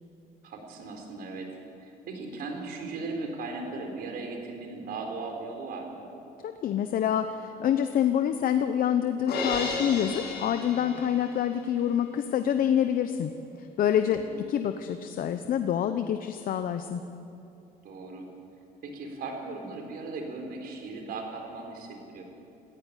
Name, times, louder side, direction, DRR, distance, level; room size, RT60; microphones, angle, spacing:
voice 1, 0.4-6.1 14.0-14.4 17.8-18.3 18.8-22.3, right 3 dB, 65° right, 3 dB, 4.2 m, -38 dB
voice 2, 6.4-13.3 13.8-14.2 14.5-17.0, left 9 dB, 55° left, 8 dB, 0.9 m, -26 dB
Crash cymbal, 9.3-11.5, left 3 dB, 80° left, 6.6 m, -33 dB
17.5 x 15.5 x 10.0 m, 2.8 s
cardioid pair, 110°, 17 cm